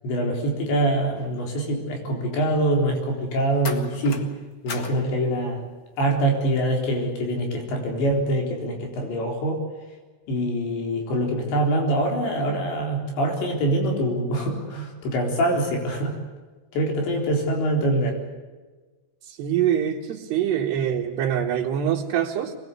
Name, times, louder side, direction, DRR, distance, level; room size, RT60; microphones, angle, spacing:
voice 1, 0.0-4.2 4.6-5.6 6.0-9.6 10.3-16.1 16.7-18.2, right 1 dB, 70° left, 2 dB, 6.1 m, -24 dB
sound 1, 1.2-1.5 3.6-4.3 4.7-5.0 6.0-6.2, left 4 dB, 55° left, 1.4 m, -36 dB
voice 2, 19.2-22.6, right 9 dB, 70° right, -2 dB, 3.4 m, -24 dB
25.0 x 21.0 x 8.2 m, 1.3 s
omnidirectional pair, 5.3 m